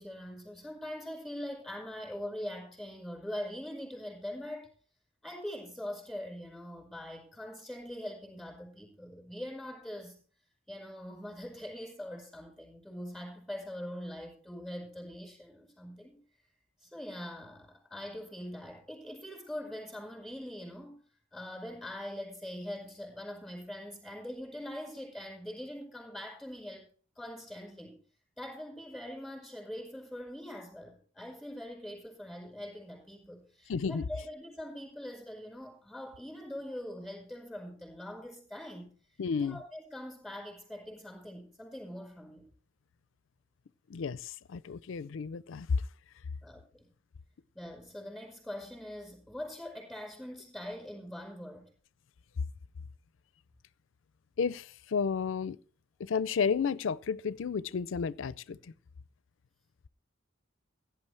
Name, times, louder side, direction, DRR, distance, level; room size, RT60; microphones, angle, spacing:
voice 1, 0.0-4.7 5.2-10.2 10.7-16.2 16.8-21.0 21.3-26.9 27.1-28.0 28.4-38.9 39.4-42.5 46.4-46.9 47.5-51.7, left 1 dB, ahead, 5.0 m, -43 dB
voice 2, 33.7-34.0 39.2-39.6 43.9-45.8 54.4-55.6 56.0-58.7, left 5 dB, 75° left, 0.4 m, -32 dB
16.0 x 10.5 x 3.3 m
head